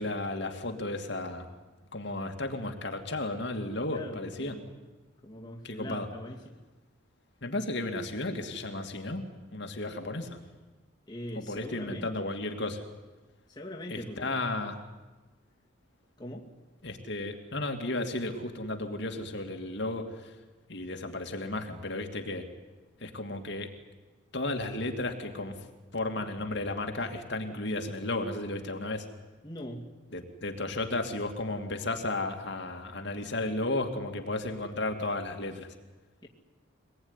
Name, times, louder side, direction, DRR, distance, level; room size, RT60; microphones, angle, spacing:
voice 1, 0.0-1.5 1.9-4.6 5.6-6.1 7.4-10.4 11.4-12.8 13.9-14.8 16.8-20.4 20.7-22.5 23.0-23.7 24.3-25.7 25.9-29.1 30.1-35.7, left 2 dB, 60° left, 4 dB, 2.5 m, -34 dB
voice 2, 3.9-4.8 5.2-6.6 11.1-12.1 13.5-14.4 16.2-16.5 29.4-29.9, left 1 dB, 20° left, 0 dB, 2.4 m, -42 dB
25.0 x 20.0 x 9.9 m, 1.2 s
head